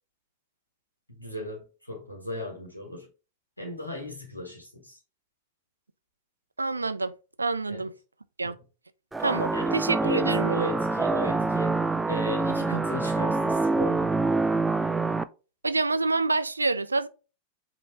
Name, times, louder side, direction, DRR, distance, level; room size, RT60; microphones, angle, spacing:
voice 1, 1.1-3.1 3.6-5.0 7.7-7.9 8.4-8.5 9.5-14.1, left 1 dB, 85° left, 1.3 m, -36 dB
voice 2, 6.6-7.1 7.4-7.9 8.4-8.6 9.2-10.6 15.6-17.1, right 3 dB, 80° right, 0.4 m, -27 dB
sound 1, 9.1-15.2, right 3 dB, 10° right, 0.3 m, -26 dB
5.3 x 3.0 x 3.4 m
figure-of-eight pair, 90°, 0 cm